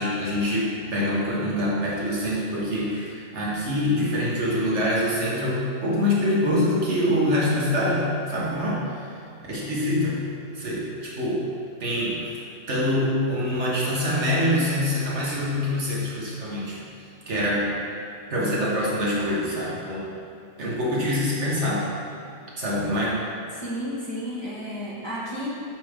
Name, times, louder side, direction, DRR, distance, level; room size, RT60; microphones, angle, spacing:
voice 1, 0.0-9.1 9.5-10.2 10.5-11.5 11.8-12.4 12.7-16.8 17.3-17.7 18.3-20.1 20.6-21.9 22.6-23.2, left 1 dB, 55° right, -6 dB, 1.6 m, -25 dB
voice 2, 23.5-25.5, equal, 20° left, -9 dB, 1.4 m, -32 dB
8.9 x 5.3 x 3.6 m, 2.6 s
omnidirectional pair, 1.5 m